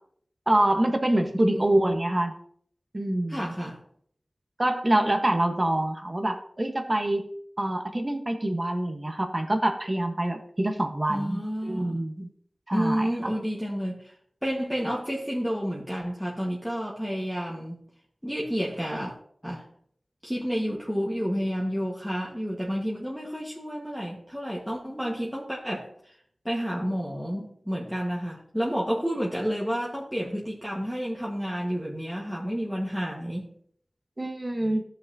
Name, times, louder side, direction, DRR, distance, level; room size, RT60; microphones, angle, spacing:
voice 1, 0.5-2.3 2.9-3.4 4.6-7.3 7.6-11.4 11.7-12.3 12.7-13.3 34.2-34.8, right 1 dB, 35° right, 5 dB, 1.3 m, -25 dB
voice 2, 1.2-1.6 3.3-3.8 11.1-12.0 12.7-14.1 14.4-17.8 18.2-19.1 19.4-19.7 20.2-26.1 26.4-33.5, equal, ahead, -4 dB, 1.5 m, -30 dB
14.5 x 5.7 x 2.8 m, 0.64 s
wide cardioid pair, 65°, 0 cm